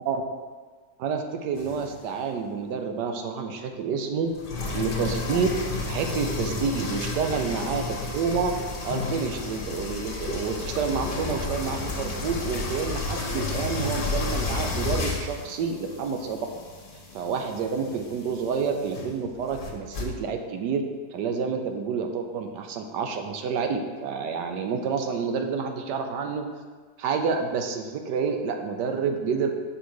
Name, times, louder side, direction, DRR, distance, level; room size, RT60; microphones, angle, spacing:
voice 1, 1.0-4.3 4.7-5.5 5.9-7.8 8.1-8.5 8.8-16.4 17.1-20.8 21.1-26.5 27.0-29.6, right 5 dB, 85° right, 5 dB, 1.3 m, -29 dB
sound 1, 1.6-2.1 4.3-20.0, left 3 dB, 40° left, 1.0 m, -32 dB
6.3 x 5.1 x 4.8 m, 1.4 s
omnidirectional pair, 1.8 m